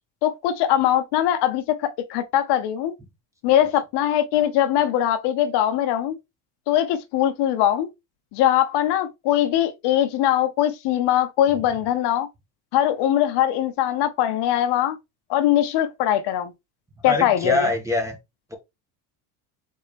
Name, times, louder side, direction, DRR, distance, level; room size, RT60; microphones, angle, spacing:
voice 1, 0.2-2.9 3.4-6.2 6.7-7.9 8.3-12.3 12.7-15.0 15.3-16.5 17.0-17.7, left 11 dB, 65° left, 0.9 m, -21 dB
voice 2, 17.1-18.2, left 2 dB, 5° right, 1.5 m, -23 dB
4.2 x 3.6 x 3.3 m
supercardioid pair, 105°, 44 cm